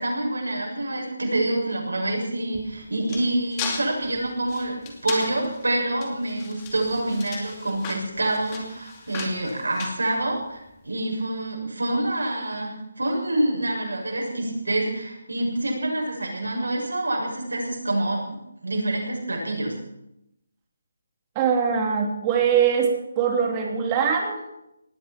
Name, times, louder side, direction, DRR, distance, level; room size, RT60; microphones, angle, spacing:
voice 1, 0.0-18.4 18.6-19.7, right 1 dB, 85° right, -1 dB, 6.9 m, -27 dB
sound 1, 2.5-10.7, left 5 dB, 20° left, 2.5 m, -37 dB
voice 2, 21.3-24.4, right 7 dB, 20° right, 1 dB, 3.4 m, -22 dB
19.0 x 16.0 x 4.6 m, 0.84 s
figure-of-eight pair, 160°, 0 cm